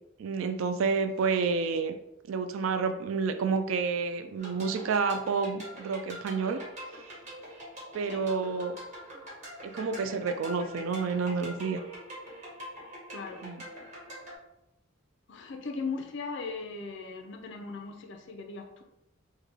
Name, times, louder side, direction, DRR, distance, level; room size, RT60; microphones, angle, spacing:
voice 1, 0.2-1.9 2.3-6.6 7.9-8.8 9.6-11.8 13.4-13.6, right 5 dB, 90° right, 8 dB, 0.3 m, -29 dB
sound 1, 4.4-14.3, equal, 35° right, 1.2 m, -44 dB
voice 2, 13.1-13.5 15.3-18.8, left 4 dB, 65° left, 4 dB, 0.5 m, -38 dB
3.2 x 2.1 x 3.5 m, 0.85 s
head